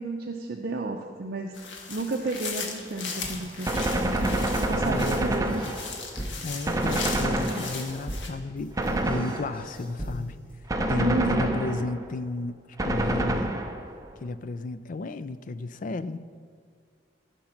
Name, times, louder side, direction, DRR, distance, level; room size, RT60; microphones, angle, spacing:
voice 1, 0.0-1.5 1.9-4.4 4.7-5.6 11.0-11.8, right 2 dB, 55° right, 3 dB, 0.6 m, -32 dB
sound 1, 1.5-8.3, left 4 dB, 90° left, 1.4 m, -37 dB
sound 2, 3.2-10.5, equal, 5° left, 1.8 m, -40 dB
Gunshot gunfire, 3.7-6.2 6.7-8.1 8.8-9.8 10.7-12.1 12.8-14.0, right 1 dB, 20° right, 0.7 m, -27 dB
voice 2, 4.9-5.4 6.4-8.8 9.1-10.4 10.9-13.6 14.2-16.3, left 3 dB, 45° left, 14 dB, 0.4 m, -33 dB
14.5 x 5.3 x 5.8 m, 2.1 s
head